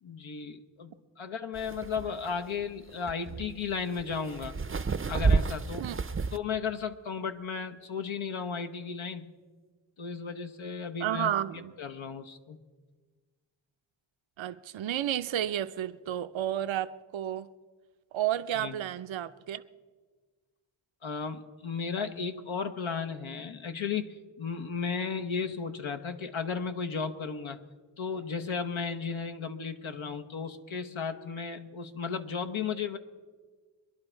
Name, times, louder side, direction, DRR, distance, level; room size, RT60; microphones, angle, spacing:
voice 1, 0.0-4.6 5.1-5.9 6.3-9.3 10.0-11.3 11.8-12.6 18.5-18.7 21.0-27.6 28.0-33.0, left 5 dB, 75° left, 1.0 m, -34 dB
sound 1, 1.6-6.4, right 4 dB, 25° right, 0.5 m, -30 dB
voice 2, 11.0-11.7 14.4-17.5 18.1-19.6, right 11 dB, 70° right, 0.6 m, -31 dB
23.0 x 11.0 x 4.5 m
cardioid pair, 50°, 48 cm